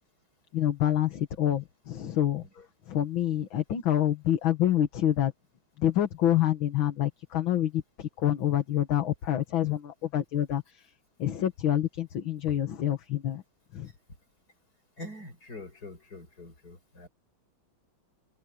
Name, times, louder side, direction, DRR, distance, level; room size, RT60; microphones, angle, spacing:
voice 1, 0.5-2.5 2.9-5.3 5.8-10.9 11.2-13.4 13.7-13.9, left 11 dB, 70° left, 2.1 m, -27 dB
voice 2, 15.0-17.1, left 2 dB, 45° left, 6.7 m, -44 dB
open air
omnidirectional pair, 2.3 m